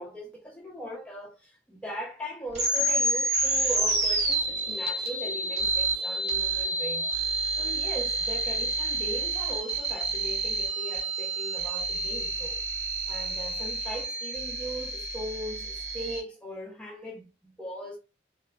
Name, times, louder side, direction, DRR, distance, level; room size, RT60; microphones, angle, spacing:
voice 1, 0.0-7.1 7.5-12.6 13.1-18.0, equal, 5° left, 0.5 m, -39 dB
sound 1, 2.5-16.2, right 2 dB, 40° right, 0.9 m, -29 dB
2.8 x 2.2 x 2.3 m
head